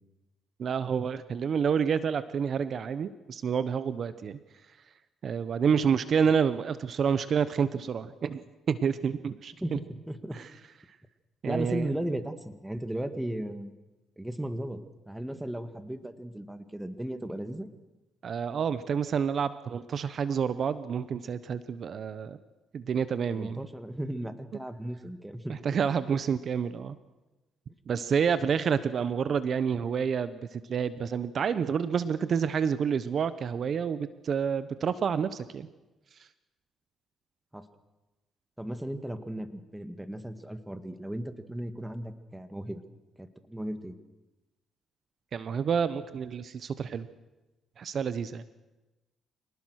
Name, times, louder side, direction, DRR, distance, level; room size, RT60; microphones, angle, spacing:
voice 1, 0.6-4.4 5.2-8.4 8.7-9.5 10.3-10.5 11.4-11.9 18.2-22.4 22.7-23.7 25.5-27.0 27.9-35.7 45.3-47.1 47.8-48.4, right 7 dB, 55° right, 14 dB, 1.0 m, -28 dB
voice 2, 9.6-10.4 11.4-13.7 14.2-17.7 23.3-25.8 37.5-37.7 38.6-42.8 43.2-43.9, right 1 dB, 5° right, 10 dB, 1.9 m, -36 dB
26.5 x 19.5 x 6.5 m, 1.1 s
cardioid pair, 90°, 0 cm